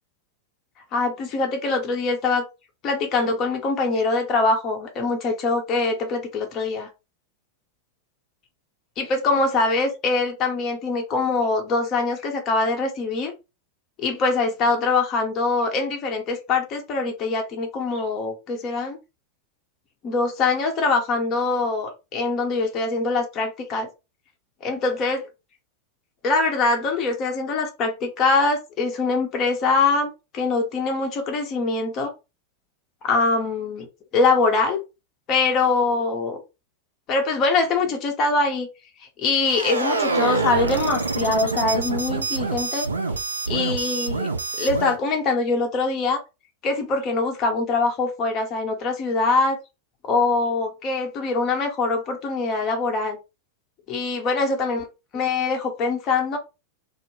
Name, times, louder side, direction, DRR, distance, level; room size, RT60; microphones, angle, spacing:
voice 1, 0.9-2.4 2.8-6.9 9.0-13.3 14.0-19.0 20.0-23.9 24.6-25.2 26.2-32.1 33.0-33.9 34.1-34.8 35.3-36.4 37.1-38.7 39.0-42.9 43.5-44.3 44.6-46.2 46.6-49.6 50.0-53.2 53.9-54.8 55.1-56.4, left 3 dB, 35° left, 0.6 m, -23 dB
sound 1, 39.4-45.0, right 3 dB, 80° right, 0.4 m, -26 dB
2.1 x 2.0 x 2.9 m
figure-of-eight pair, 90°, 0 cm